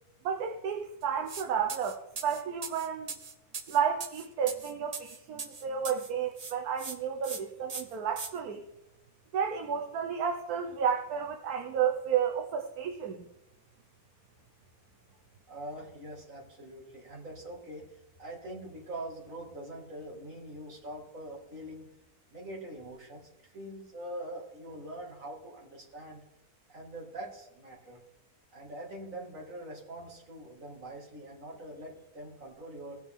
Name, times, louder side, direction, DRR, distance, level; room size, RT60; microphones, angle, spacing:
voice 1, 0.2-3.2 3.7-8.6 9.3-13.3, right 7 dB, 75° right, 3 dB, 1.3 m, -32 dB
sound 1, 1.3-1.4 1.7-6.1 6.4-7.0 7.2-7.4 7.7-8.3, right 5 dB, 35° right, 0.6 m, -40 dB
voice 2, 15.5-21.9 22.3-26.2 26.7-28.0 28.5-33.0, right 1 dB, 60° right, -2 dB, 2.6 m, -43 dB
17.0 x 6.0 x 3.6 m, 0.86 s
omnidirectional pair, 1.6 m